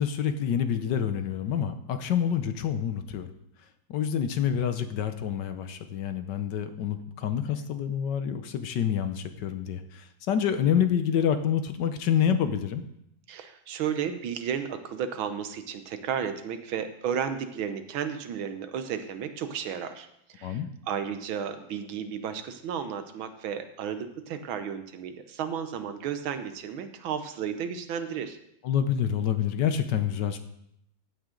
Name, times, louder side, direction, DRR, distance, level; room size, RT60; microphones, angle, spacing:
voice 1, 0.0-3.3 3.9-12.8 20.4-20.7 28.6-30.4, left 8 dB, 65° left, 9 dB, 1.3 m, -27 dB
voice 2, 13.3-20.1 20.3-28.4, right 8 dB, 85° right, 9 dB, 1.7 m, -33 dB
15.0 x 9.0 x 3.8 m, 0.76 s
omnidirectional pair, 2.2 m